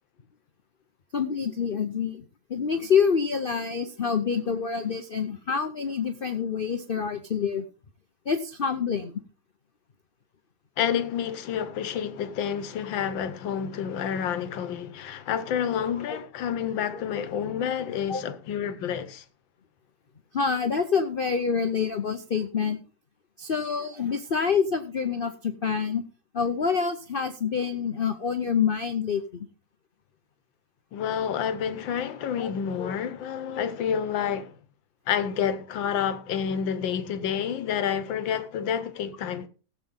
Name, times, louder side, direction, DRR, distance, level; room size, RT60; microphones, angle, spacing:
voice 1, 1.1-2.2 2.5-7.6 8.3-9.2 16.1-16.2 16.9-17.0 18.1-18.2 20.3-22.8 23.4-26.0 26.3-29.5 32.4-32.5 32.8-32.9, left 6 dB, 55° left, 0.6 m, -27 dB
voice 2, 10.8-19.2 30.9-34.6 35.1-39.5, left 8 dB, 90° left, 1.7 m, -29 dB
17.0 x 7.6 x 3.7 m
omnidirectional pair, 2.0 m